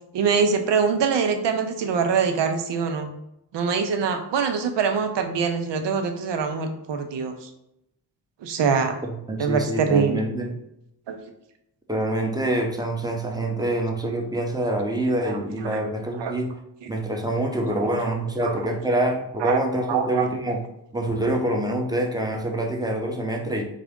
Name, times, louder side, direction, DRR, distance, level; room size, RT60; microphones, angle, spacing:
voice 1, 0.1-3.1 3.5-7.5 8.4-9.0 9.4-10.2 11.1-11.2 15.2-15.8 16.2-16.3 17.8-18.0 18.4-18.5 19.4-19.6 19.9-20.3, right 6 dB, 80° right, 6 dB, 0.6 m, -24 dB
voice 2, 9.3-10.6 11.9-16.5 16.9-20.6 20.9-23.7, right 1 dB, 10° right, 1 dB, 0.7 m, -26 dB
3.6 x 2.4 x 3.5 m, 0.82 s
cardioid pair, 65°, 41 cm